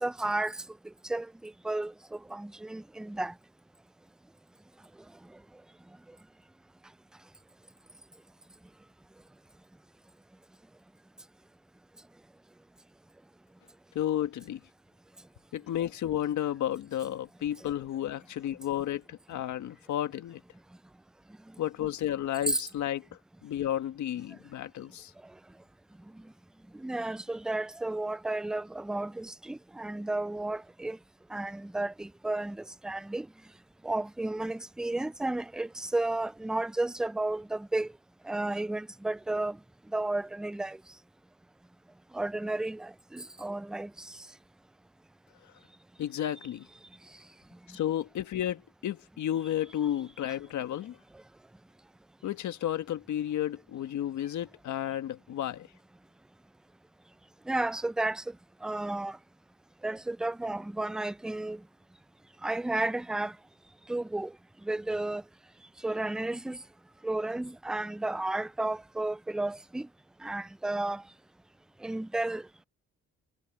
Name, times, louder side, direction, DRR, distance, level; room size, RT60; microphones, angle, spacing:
voice 1, 0.0-0.6 1.0-3.3 22.5-22.6 26.7-31.0 31.3-33.3 33.8-37.9 38.3-39.6 39.9-40.8 42.1-44.2 57.5-58.4 58.6-59.2 59.8-61.6 62.4-63.4 63.9-64.3 64.6-65.2 65.8-66.6 67.0-69.9 70.2-71.0 71.8-72.4, right 2 dB, ahead, 0.3 m, -32 dB
voice 2, 13.9-14.6 15.5-20.4 21.6-23.1 23.4-25.1 46.0-46.7 47.7-51.0 52.2-55.7, left 11 dB, 75° left, 1.7 m, -32 dB
cardioid pair, 90°, 30 cm